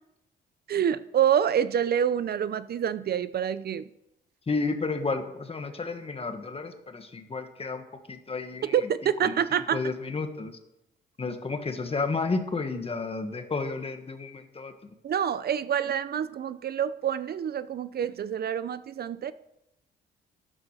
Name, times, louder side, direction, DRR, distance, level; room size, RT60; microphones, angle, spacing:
voice 1, 0.7-3.9 8.6-9.8 15.0-19.3, right 9 dB, 50° right, 14 dB, 0.6 m, -27 dB
voice 2, 4.5-8.7 9.2-9.4 9.7-10.6 11.2-14.7, left 3 dB, 30° left, 7 dB, 1.7 m, -32 dB
12.5 x 11.0 x 4.9 m, 0.85 s
cardioid pair, 90°, 20 cm